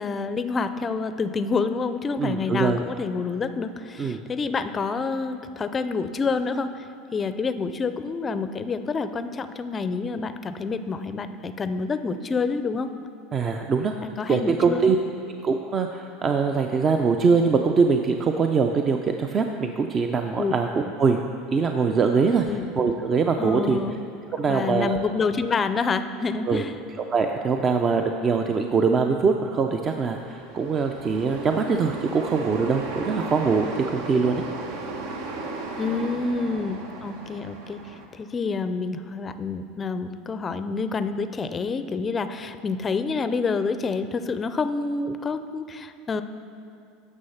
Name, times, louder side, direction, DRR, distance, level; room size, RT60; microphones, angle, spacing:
voice 1, 0.0-6.9 7.1-12.9 14.0-15.0 20.4-20.5 22.4-22.7 23.4-24.0 24.5-26.7 35.8-46.2, left 4 dB, 25° left, 11 dB, 0.5 m, -28 dB
voice 2, 2.2-2.8 4.0-4.2 13.3-13.9 14.3-15.0 15.4-21.2 21.5-22.4 22.8-23.8 24.3-25.0 26.5-26.6 27.1-34.4, right 5 dB, 30° right, 5 dB, 0.5 m, -23 dB
sound 1, 30.2-38.1, right 3 dB, 75° right, 1.0 m, -35 dB
9.7 x 6.4 x 5.6 m, 2.5 s
supercardioid pair, 115°, 0 cm